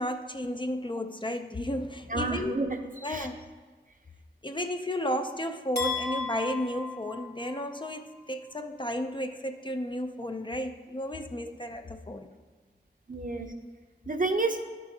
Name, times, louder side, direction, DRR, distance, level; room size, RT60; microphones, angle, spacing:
voice 1, 0.0-2.5 3.0-3.4 4.4-12.3, left 1 dB, 25° left, 6 dB, 0.4 m, -33 dB
voice 2, 2.1-3.3 13.1-13.5 14.1-14.6, right 3 dB, 50° right, 5 dB, 0.7 m, -30 dB
sound 1, 5.8-7.9, left 4 dB, 60° left, 2.0 m, -35 dB
11.5 x 6.1 x 2.7 m, 1.4 s
wide cardioid pair, 55°, 18 cm